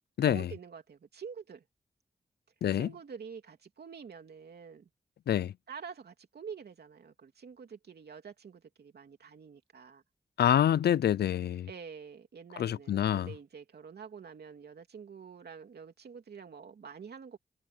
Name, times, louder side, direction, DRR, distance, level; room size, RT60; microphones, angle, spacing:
voice 1, 0.2-1.6 2.7-4.9 5.7-10.0 11.7-17.4, right 6 dB, 80° right, 3.0 m, -47 dB
voice 2, 10.4-11.7 12.6-13.3, left 10 dB, 85° left, 0.4 m, -26 dB
cardioid pair, 55°, 16 cm